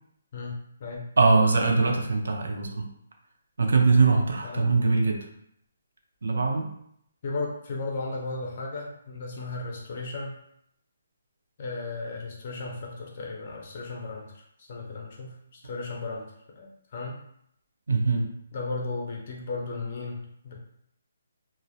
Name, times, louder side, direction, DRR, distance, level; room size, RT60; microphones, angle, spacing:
voice 1, 0.3-1.0 4.4-4.7 7.2-10.4 11.6-14.4 14.7-16.3 16.5-17.2 18.5-20.6, left 3 dB, 30° left, -1 dB, 0.4 m, -35 dB
voice 2, 1.2-2.9 3.6-5.2 6.2-6.7 17.9-18.2, right 4 dB, 70° right, 2 dB, 0.4 m, -22 dB
2.2 x 2.0 x 2.7 m, 0.73 s
hypercardioid pair, 180°, 0 cm